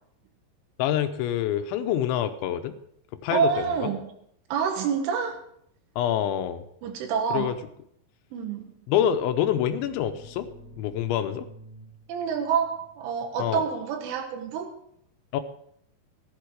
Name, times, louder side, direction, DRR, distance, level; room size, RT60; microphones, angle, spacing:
voice 1, 0.8-2.7 3.2-3.9 6.0-6.6 7.3-7.5 8.9-10.5 10.8-11.5 13.4-13.6 15.3-15.4, left 10 dB, 80° left, 9 dB, 3.1 m, -26 dB
voice 2, 3.3-4.2 4.5-5.4 6.8-7.6 8.3-8.7 12.1-14.7, right 6 dB, 90° right, 5 dB, 4.0 m, -27 dB
sound 1, 8.9-14.5, right 1 dB, 35° left, 3.7 m, -51 dB
15.0 x 11.5 x 4.8 m, 0.70 s
omnidirectional pair, 5.4 m